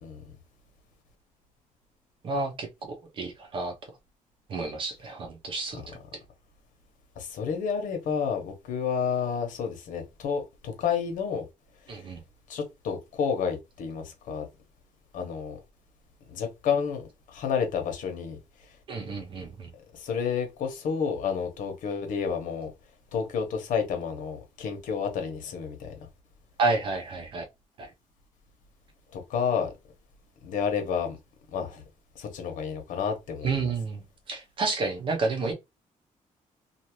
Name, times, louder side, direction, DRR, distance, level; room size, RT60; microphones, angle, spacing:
voice 1, 0.0-0.3 5.7-5.9 7.2-11.4 12.5-14.5 15.1-15.6 16.3-18.4 18.7-18.8 19.9-22.7 23.1-25.9 29.1-29.7 30.4-31.2 31.5-31.8 32.1-33.7, left 6 dB, 80° left, 1.0 m, -30 dB
voice 2, 2.2-3.7 4.5-5.8 11.9-12.2 18.9-19.7 26.6-27.4 27.8-27.9 33.4-35.5, right 3 dB, 40° right, 0.7 m, -30 dB
2.7 x 2.5 x 3.0 m
cardioid pair, 180°, 13 cm